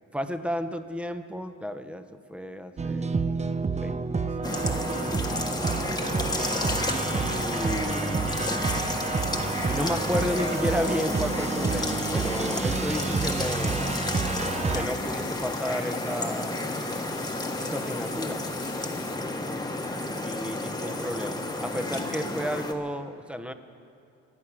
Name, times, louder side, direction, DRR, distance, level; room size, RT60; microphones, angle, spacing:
voice 1, 0.1-2.0 2.3-3.4 3.8-5.5 6.9-8.5 9.7-14.0 14.7-16.6 17.6-18.4 20.2-23.5, equal, 5° right, 9 dB, 1.0 m, -33 dB
sound 1, 2.8-14.9, right 4 dB, 20° right, 0.7 m, -29 dB
sound 2, 4.4-22.7, left 2 dB, 15° left, 1.4 m, -31 dB
sound 3, 9.1-19.1, left 8 dB, 60° left, 1.4 m, -46 dB
25.5 x 8.5 x 6.2 m, 2.7 s
cardioid pair, 90°, 30 cm